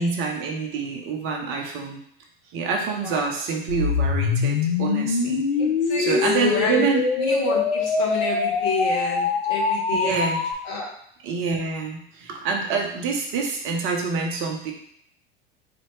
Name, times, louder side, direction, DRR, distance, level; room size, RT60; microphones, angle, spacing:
voice 1, 0.0-2.0 2.5-5.4 6.0-7.0 9.9-10.4 11.2-14.7, right 4 dB, 45° right, 1 dB, 0.8 m, -26 dB
voice 2, 2.9-3.3 5.6-6.8 7.2-10.4 10.6-10.9, left 4 dB, 60° left, -3 dB, 1.4 m, -29 dB
sound 1, 3.7-10.5, left 4 dB, 85° left, 0.5 m, -23 dB
4.1 x 2.8 x 3.2 m, 0.66 s
figure-of-eight pair, 75°, 30 cm